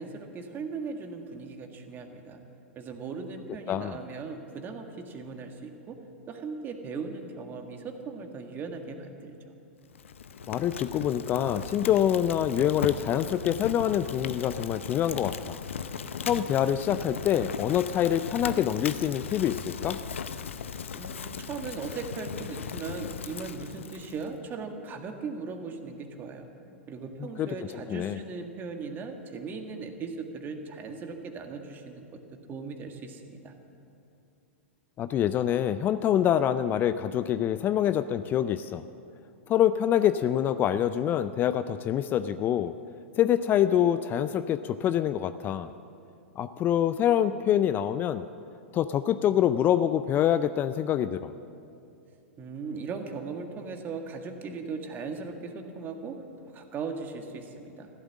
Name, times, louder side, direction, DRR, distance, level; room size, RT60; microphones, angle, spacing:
voice 1, 0.0-2.4 2.8-6.0 6.3-9.4 20.9-26.5 26.9-32.2 32.5-33.5 52.4-56.2 56.4-57.9, right 4 dB, 30° right, 5 dB, 1.7 m, -38 dB
Fire, 9.9-24.3, left 6 dB, 75° left, 0.7 m, -37 dB
voice 2, 10.5-15.6 16.2-20.0 27.4-27.5 27.9-28.2 35.0-38.8 39.5-42.7 43.2-45.7 46.4-48.3 48.7-51.3, left 10 dB, 30° left, 12 dB, 0.4 m, -25 dB
14.5 x 12.5 x 7.4 m, 2.6 s
hypercardioid pair, 105°, 7 cm